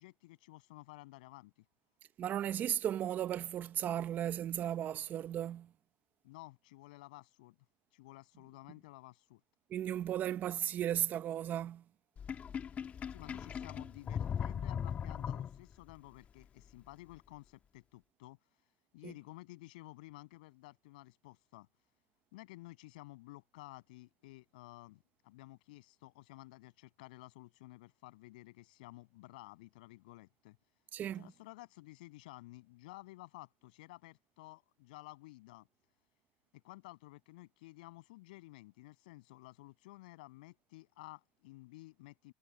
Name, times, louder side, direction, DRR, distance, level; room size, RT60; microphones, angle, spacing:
voice 1, 0.0-1.5 6.2-7.6 7.9-9.4 13.1-18.4 18.9-21.7 22.3-30.6 31.1-35.7 36.5-42.3, left 20 dB, 85° left, 6.9 m, -53 dB
voice 2, 2.2-5.7 9.7-11.8 19.0-19.1 30.9-31.2, right 11 dB, 40° right, 0.9 m, -35 dB
Sink (filling or washing), 12.2-15.9, left 8 dB, 35° left, 1.3 m, -39 dB
supercardioid pair, 115°, 4 cm